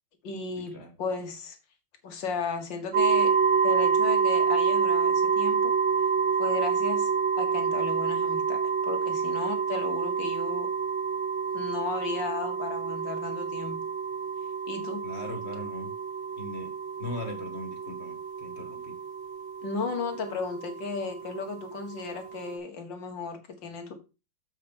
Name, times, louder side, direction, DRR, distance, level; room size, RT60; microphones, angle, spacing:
voice 1, 0.2-1.6 2.0-3.4 3.6-5.7 6.4-7.1 7.4-10.7 11.5-13.8 14.7-15.0 19.6-23.9, left 4 dB, 65° left, 2.3 m, -35 dB
sound 1, 2.9-22.6, right 6 dB, 90° right, 2.1 m, -28 dB
voice 2, 15.0-15.9 16.4-16.7 17.0-18.9, left 1 dB, 35° left, 1.9 m, -39 dB
7.2 x 5.9 x 5.3 m
omnidirectional pair, 2.2 m